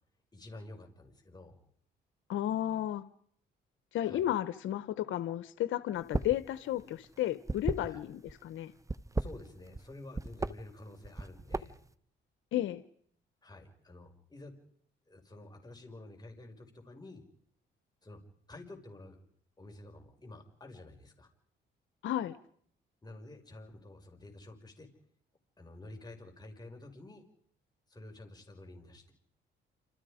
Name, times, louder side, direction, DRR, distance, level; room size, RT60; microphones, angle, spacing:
voice 1, 0.3-1.5 4.0-4.3 7.9-8.0 9.2-11.7 13.4-14.5 15.1-17.2 18.0-18.2 18.5-19.2 19.6-21.3 23.0-24.9 25.6-27.3 27.9-29.1, left 2 dB, 20° left, 3 dB, 5.7 m, -50 dB
voice 2, 2.3-3.0 3.9-8.7 12.5-12.8 22.0-22.4, left 12 dB, 80° left, 14 dB, 1.0 m, -33 dB
sound 1, 6.0-6.4 6.7-8.3 8.8-9.9 10.1-10.5 11.0-11.9, right 3 dB, 15° right, 1.0 m, -34 dB
28.0 x 27.0 x 5.1 m, 0.64 s
cardioid pair, 90°, 20 cm